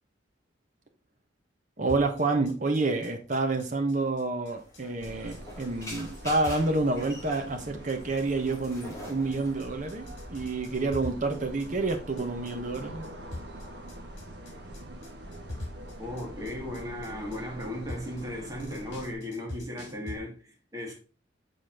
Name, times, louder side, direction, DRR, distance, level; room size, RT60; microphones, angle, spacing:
voice 1, 1.8-13.1, right 3 dB, 40° right, 1.0 m, -28 dB
sound 1, 1.9-20.2, left 2 dB, 65° left, 2.7 m, -44 dB
sound 2, 4.5-11.3, equal, 15° left, 1.7 m, -46 dB
sound 3, 5.0-19.1, right 1 dB, 60° right, 1.3 m, -44 dB
voice 2, 16.0-20.9, left 1 dB, 20° right, 1.9 m, -36 dB
6.7 x 4.1 x 3.8 m
head